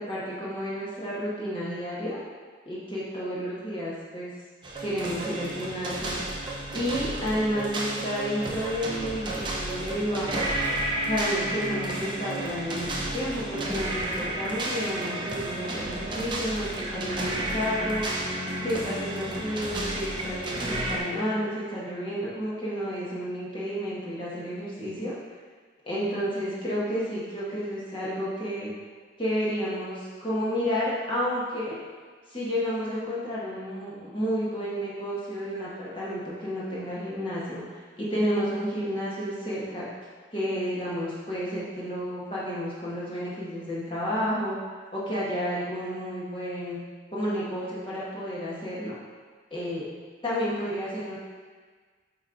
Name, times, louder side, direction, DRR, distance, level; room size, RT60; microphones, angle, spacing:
voice 1, 0.0-2.2 2.6-4.3 4.8-6.2 6.7-10.5 11.1-18.1 18.6-25.2 25.8-28.7 29.2-31.8 32.3-37.6 38.0-39.9 40.3-44.6 44.9-46.8 47.1-48.9 49.5-49.8 50.2-51.2, equal, 25° left, -8 dB, 1.4 m, -31 dB
sound 1, 4.6-21.0, right 1 dB, 25° right, 0.7 m, -32 dB
8.8 x 3.2 x 3.9 m, 1.5 s
head